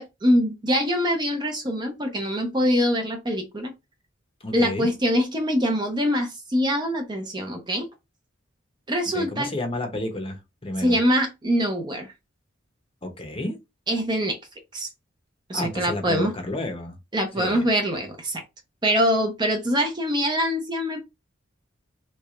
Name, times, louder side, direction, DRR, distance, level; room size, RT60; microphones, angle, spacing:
voice 1, 0.0-3.7 4.5-7.9 8.9-9.5 10.8-12.1 13.9-14.4 14.7-14.9 15.5-16.3 17.1-18.4 18.8-21.0, equal, 20° right, 0.7 m, -24 dB
voice 2, 4.4-4.9 9.1-11.0 13.0-13.6 15.5-17.0 17.4-17.7, left 2 dB, 30° left, 0.8 m, -31 dB
3.3 x 3.2 x 2.4 m
head